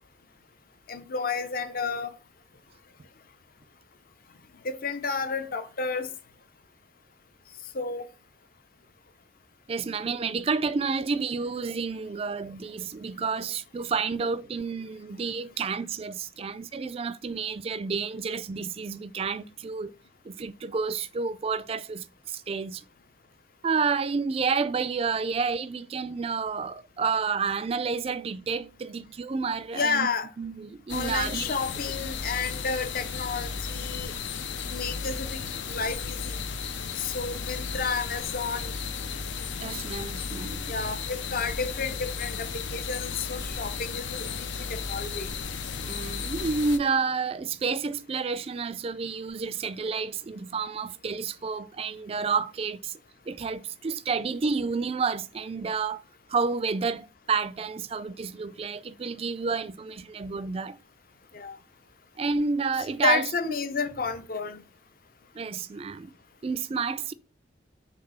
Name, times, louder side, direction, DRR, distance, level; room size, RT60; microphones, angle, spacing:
voice 1, 0.9-2.1 4.6-6.1 7.7-8.1 29.7-30.3 30.9-34.2 34.7-36.4 37.0-38.7 40.7-45.3 61.3-61.6 63.0-64.6, left 5 dB, 50° left, 0.7 m, -31 dB
voice 2, 9.7-19.9 20.2-22.8 23.6-30.1 30.4-31.5 39.6-40.7 45.8-53.0 53.3-56.0 56.3-60.8 62.2-63.5 65.3-66.1 66.4-67.1, right 5 dB, 30° right, 0.3 m, -30 dB
sound 1, 30.9-46.8, left 5 dB, 85° left, 0.7 m, -34 dB
5.9 x 3.4 x 5.3 m
head